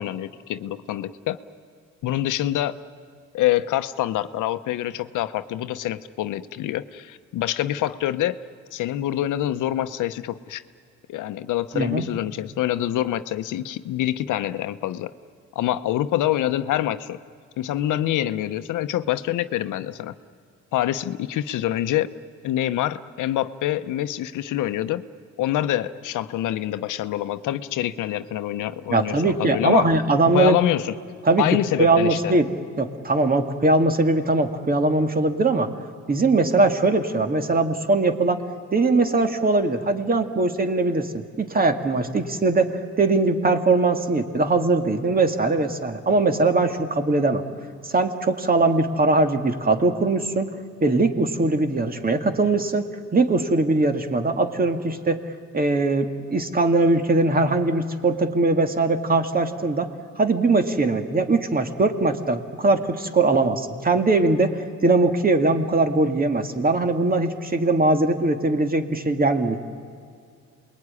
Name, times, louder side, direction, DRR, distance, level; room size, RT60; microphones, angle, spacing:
voice 1, 0.0-1.4 2.0-2.7 3.3-8.4 8.7-10.6 11.1-15.1 15.5-17.2 17.6-20.1 20.7-22.1 22.4-25.0 25.4-29.9 30.3-31.0 31.4-32.4, left 13 dB, 85° left, 12 dB, 0.9 m, -25 dB
voice 2, 11.7-12.0 28.9-30.6 31.3-32.5 32.8-35.7 36.1-38.4 38.7-47.4 47.8-50.5 50.8-55.2 55.5-59.9 60.2-69.6, right 3 dB, 30° right, 6 dB, 2.2 m, -21 dB
28.0 x 21.5 x 9.8 m, 2.2 s
cardioid pair, 90°, 30 cm